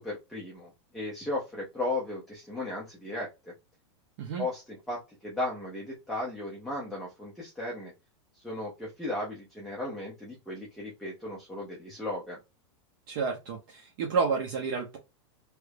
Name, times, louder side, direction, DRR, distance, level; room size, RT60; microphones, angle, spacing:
voice 1, 0.0-3.5 4.4-7.9 8.3-12.4, left 2 dB, ahead, 0.5 m, -36 dB
voice 2, 13.1-15.0, right 5 dB, 40° right, 0.7 m, -30 dB
3.1 x 2.3 x 3.2 m
supercardioid pair, 175°, 16 cm